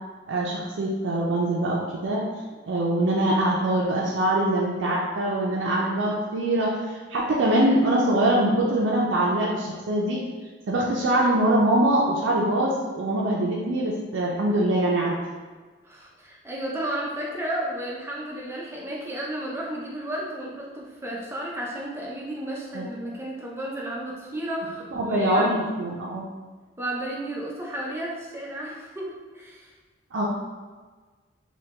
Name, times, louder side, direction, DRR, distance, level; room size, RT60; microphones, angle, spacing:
voice 1, 0.3-2.2 2.7-10.2 10.7-15.2 22.7-22.8 25.0-26.3 30.1-30.3, right 1 dB, 75° right, -4 dB, 0.4 m, -23 dB
voice 2, 15.8-25.7 26.8-29.7, right 1 dB, 15° right, -4 dB, 0.4 m, -33 dB
3.2 x 2.2 x 2.8 m, 1.4 s
head